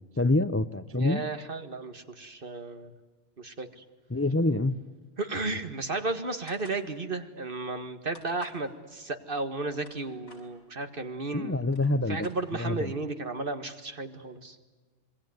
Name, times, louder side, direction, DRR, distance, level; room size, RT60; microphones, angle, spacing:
voice 1, 0.2-1.2 4.1-4.8 11.3-12.2 12.6-12.9, left 2 dB, 15° left, 12 dB, 0.5 m, -26 dB
voice 2, 0.9-2.9 3.4-3.8 5.2-11.7 12.1-14.6, right 3 dB, 40° right, 8 dB, 2.0 m, -34 dB
sound 1, 6.5-6.8 8.1-8.6 9.5-10.4 11.3-11.4 11.6-12.8, left 1 dB, 70° left, 6.2 m, -53 dB
27.0 x 22.5 x 9.4 m, 1.3 s
omnidirectional pair, 1.5 m